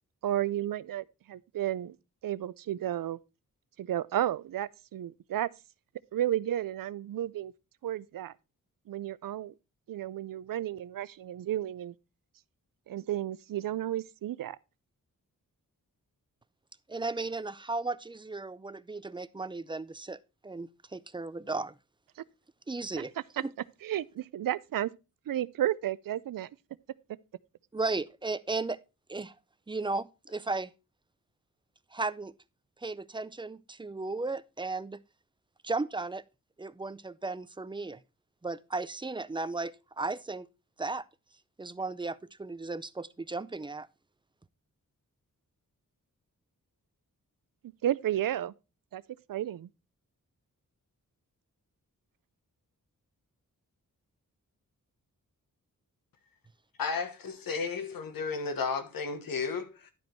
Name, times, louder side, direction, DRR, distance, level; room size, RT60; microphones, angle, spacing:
voice 1, 0.2-2.0 2.2-3.2 3.8-5.5 6.1-7.5 7.8-8.3 8.9-9.5 9.9-11.9 12.9-14.6 22.2-22.3 23.0-23.1 23.4-23.5 23.8-24.9 25.3-26.5 47.8-48.5 48.9-49.0 49.3-49.7, right 12 dB, 75° right, 0.5 m, -32 dB
voice 2, 16.9-21.7 22.7-23.1 23.4-23.5 27.7-28.8 29.1-29.3 29.7-30.7 31.9-32.3 32.8-35.0 35.6-36.2 36.6-38.0 38.4-40.5 40.8-41.1 41.6-43.9, right 3 dB, 15° right, 0.4 m, -35 dB
voice 3, 56.8-59.9, left 5 dB, 90° left, 1.4 m, -33 dB
11.5 x 5.1 x 4.5 m
wide cardioid pair, 110°, 34 cm